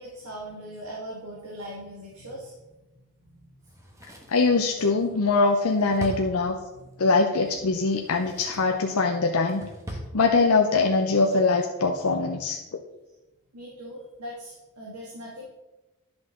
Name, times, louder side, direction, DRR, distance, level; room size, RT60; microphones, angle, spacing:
voice 1, 0.0-2.6 3.2-3.7 6.7-6.9 13.5-15.5, equal, 90° right, -4 dB, 1.9 m, -40 dB
Drawer open or close, 3.6-6.9 7.8-8.7 9.1-10.1 10.4-10.5, equal, 15° right, 1.1 m, -41 dB
voice 2, 4.3-6.6 7.0-9.6 10.1-12.8, left 3 dB, 80° left, 2 dB, 0.7 m, -22 dB
10.5 x 6.1 x 3.7 m, 1.0 s
head